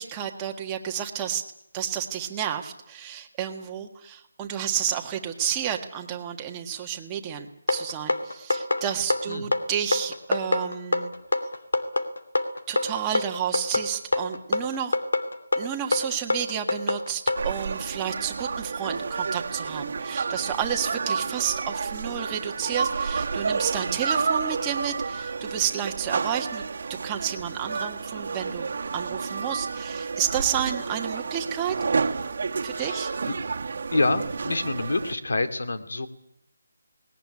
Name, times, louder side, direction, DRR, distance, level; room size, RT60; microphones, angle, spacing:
voice 1, 0.0-1.4 1.7-11.1 12.7-15.0 15.5-26.7 27.0-31.8 32.6-33.1, right 9 dB, 15° right, 2 dB, 1.6 m, -31 dB
sound 1, 7.7-17.4, left 2 dB, 90° left, 2.8 m, -25 dB
sound 2, 17.4-35.2, right 5 dB, 50° right, 1.7 m, -30 dB
voice 2, 32.7-33.4 33.9-36.1, left 2 dB, 75° left, 9 dB, 2.6 m, -27 dB
19.5 x 19.0 x 9.8 m, 0.76 s
figure-of-eight pair, 170°, 0 cm